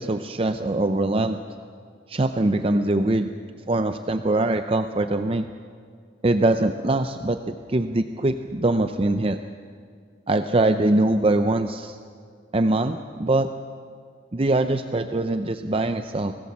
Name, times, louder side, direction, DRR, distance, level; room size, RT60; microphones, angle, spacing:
voice 1, 0.0-1.4 2.1-3.3 3.5-5.5 6.2-9.4 10.3-12.0 12.5-13.5 14.3-16.3, right 2 dB, 30° right, 8 dB, 0.6 m, -23 dB
24.0 x 18.5 x 7.3 m, 2.2 s
head